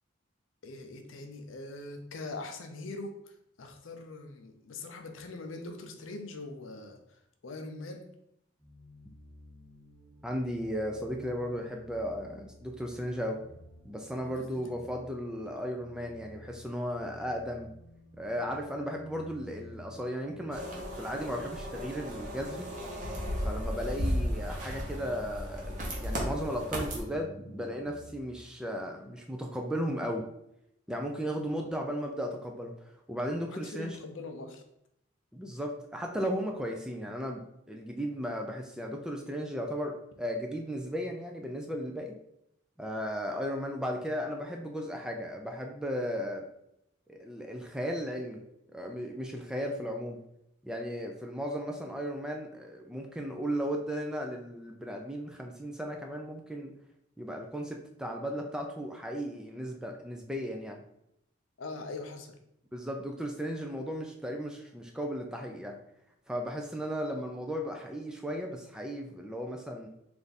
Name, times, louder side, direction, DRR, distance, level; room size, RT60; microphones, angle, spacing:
voice 1, 0.6-7.0 7.4-8.1 14.2-14.7 33.5-34.6 61.6-62.4, left 2 dB, 75° left, 5 dB, 0.6 m, -42 dB
sound 1, 8.6-28.2, left 1 dB, 15° left, 0.7 m, -52 dB
voice 2, 10.2-13.4 13.8-17.7 18.2-22.7 23.4-30.2 30.9-34.0 35.3-37.4 37.7-42.1 42.8-46.5 47.1-48.4 48.7-50.2 50.6-56.7 57.2-60.8 62.7-65.8 66.3-69.9, equal, 5° right, 2 dB, 0.3 m, -35 dB
sound 2, 20.5-27.0, equal, 35° right, 0.8 m, -35 dB
3.4 x 2.5 x 4.0 m, 0.79 s
head